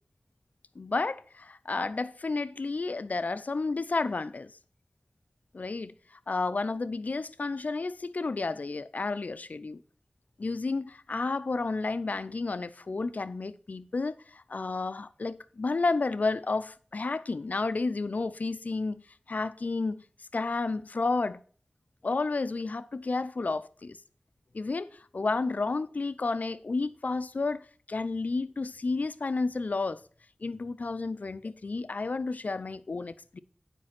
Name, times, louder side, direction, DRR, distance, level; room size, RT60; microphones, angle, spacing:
voice 1, 0.8-4.5 5.5-5.9 6.3-9.8 10.4-19.0 19.3-20.0 20.3-21.4 22.0-24.0 24.5-30.0 30.4-33.4, left 3 dB, 70° left, 0.5 m, -31 dB
9.0 x 5.3 x 5.8 m
wide cardioid pair, 50°, 3 cm